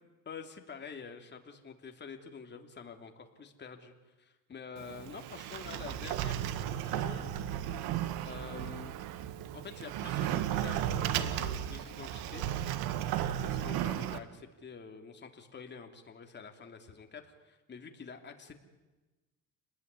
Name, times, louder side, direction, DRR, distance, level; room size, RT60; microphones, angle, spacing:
voice 1, 0.2-7.3 8.2-9.0 9.5-12.4 13.4-18.5, left 5 dB, 30° left, 4 dB, 3.1 m, -47 dB
Sliding door, 4.8-14.2, right 11 dB, 80° right, 1.7 m, -34 dB
28.0 x 20.0 x 9.7 m, 1.2 s
cardioid pair, 120°, 36 cm